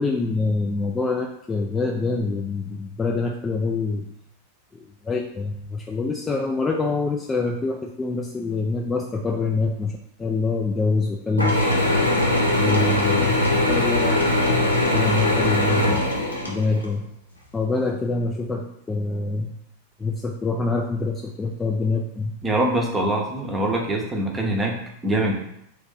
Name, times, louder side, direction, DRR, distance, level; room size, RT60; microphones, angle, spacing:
voice 1, 0.0-4.1 5.0-11.6 12.6-13.3 13.7-14.3 14.9-16.1 16.5-17.1 17.5-19.6 20.0-22.3, left 3 dB, 15° left, 1 dB, 0.3 m, -25 dB
Mechanisms / Drill, 11.4-16.9, left 1 dB, 85° left, 0.7 m, -21 dB
voice 2, 22.4-25.3, right 1 dB, 15° right, 0 dB, 0.7 m, -24 dB
3.0 x 2.6 x 3.7 m, 0.75 s
figure-of-eight pair, 90°, 0 cm